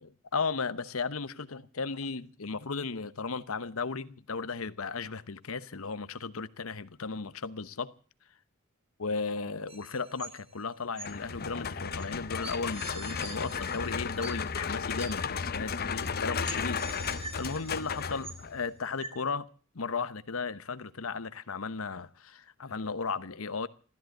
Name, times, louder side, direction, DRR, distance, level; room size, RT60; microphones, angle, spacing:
voice 1, 0.0-7.9 9.0-16.9 17.4-19.5 19.7-23.7, left 4 dB, 90° left, 1.0 m, -35 dB
sound 1, 9.7-10.6 11.0-11.1 12.0-12.1 12.4-14.6 15.0-15.1 16.0-16.1 16.4-18.6 19.0-19.1, right 2 dB, 30° right, 3.9 m, -44 dB
sound 2, 11.0-18.7, left 6 dB, 50° left, 0.8 m, -34 dB
14.0 x 13.0 x 7.8 m
head